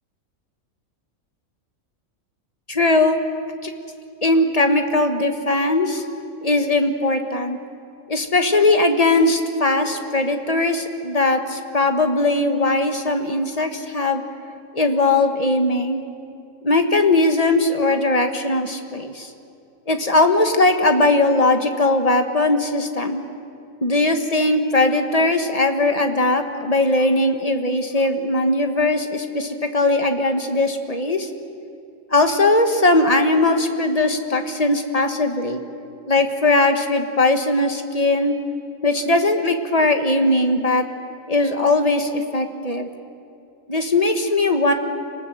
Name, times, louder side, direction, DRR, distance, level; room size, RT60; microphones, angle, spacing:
voice 1, 2.7-3.2 3.6-3.7 4.2-6.0 6.4-7.6 8.1-14.2 14.7-16.0 16.6-19.3 19.9-23.2 23.8-31.3 32.1-35.6 36.1-38.3 38.8-40.9 41.3-42.9 43.7-44.7, left 2 dB, 30° left, 6 dB, 1.4 m, -19 dB
27.0 x 19.5 x 7.8 m, 2.5 s
omnidirectional pair, 1.4 m